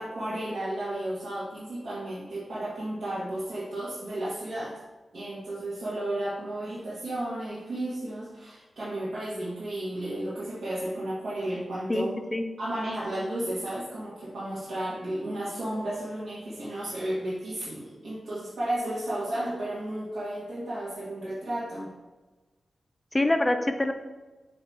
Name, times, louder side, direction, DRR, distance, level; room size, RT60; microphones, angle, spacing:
voice 1, 0.0-4.8 5.1-12.1 12.6-21.9, right 1 dB, 85° right, -10 dB, 1.7 m, -33 dB
voice 2, 11.9-12.4 23.1-23.9, left 1 dB, 15° left, 7 dB, 0.5 m, -25 dB
7.5 x 3.0 x 4.2 m, 1.2 s
wide cardioid pair, 130°, 0 cm